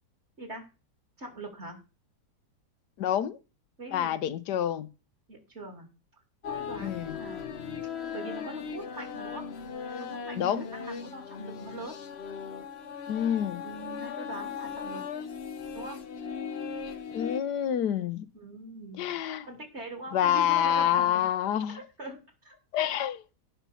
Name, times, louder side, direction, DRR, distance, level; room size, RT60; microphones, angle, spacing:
voice 1, 0.4-0.7 1.2-1.8 3.8-4.1 5.3-5.9 6.5-7.8 8.1-9.5 10.0-12.0 13.6-15.0 15.7-16.0 18.3-19.2 19.4-21.2 21.7-22.6, right 1 dB, 40° right, 2.8 m, -42 dB
voice 2, 3.0-3.4 3.9-4.9 6.8-7.2 10.4-10.7 13.1-13.6 17.1-18.2 19.0-19.5 20.1-21.8 22.7-23.2, left 10 dB, 75° left, 1.4 m, -27 dB
sound 1, 6.4-17.4, left 6 dB, 45° left, 0.9 m, -38 dB
16.0 x 5.7 x 5.6 m
omnidirectional pair, 1.8 m